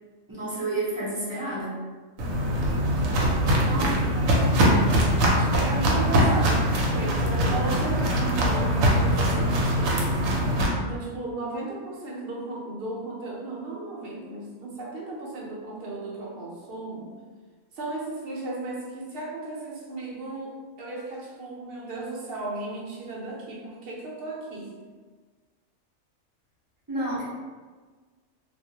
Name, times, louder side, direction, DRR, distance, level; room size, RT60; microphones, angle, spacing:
voice 1, 0.3-1.7 26.9-27.2, right 2 dB, 25° right, -9 dB, 0.5 m, -30 dB
Walk footsteps, 2.2-10.7, equal, 85° right, 1.0 m, -22 dB
voice 2, 3.5-10.1 10.8-17.1 17.7-24.7, right 2 dB, 55° right, -4 dB, 0.7 m, -35 dB
2.4 x 2.0 x 2.7 m, 1.4 s
omnidirectional pair, 1.4 m